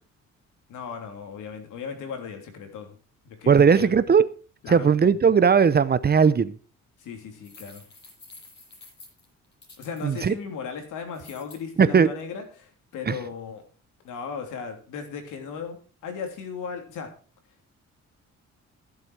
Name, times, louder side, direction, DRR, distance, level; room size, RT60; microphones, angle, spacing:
voice 1, 0.7-3.0 3.2-3.9 4.6-4.9 7.0-7.8 9.8-13.6 14.0-17.1, left 6 dB, 85° left, 5 dB, 3.2 m, -36 dB
voice 2, 3.5-4.3 4.7-6.5 10.0-10.3 11.8-12.1 13.1-13.2, right 6 dB, 35° right, 15 dB, 0.8 m, -18 dB
sound 1, 7.4-10.3 11.1-11.6, left 3 dB, 35° left, 7.9 m, -49 dB
14.0 x 7.8 x 4.8 m, 0.38 s
cardioid pair, 90°, 30 cm